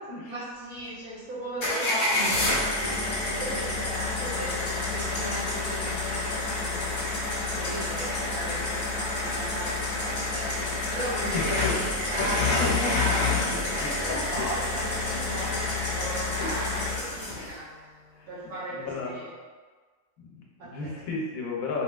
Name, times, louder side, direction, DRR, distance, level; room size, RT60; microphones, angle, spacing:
voice 1, 0.3-7.1 7.6-18.0 18.3-19.3 20.6-20.9, right 1 dB, 65° right, -12 dB, 1.2 m, -37 dB
sound 1, 1.6-17.5, left 2 dB, 45° left, 0.8 m, -28 dB
voice 2, 11.3-11.7 12.2-12.3 12.6-12.9 13.5-14.1 16.4-16.5 18.2-19.2 20.2-21.8, left 4 dB, 80° left, -3 dB, 1.1 m, -33 dB
3.3 x 2.8 x 2.3 m, 1.4 s
omnidirectional pair, 1.4 m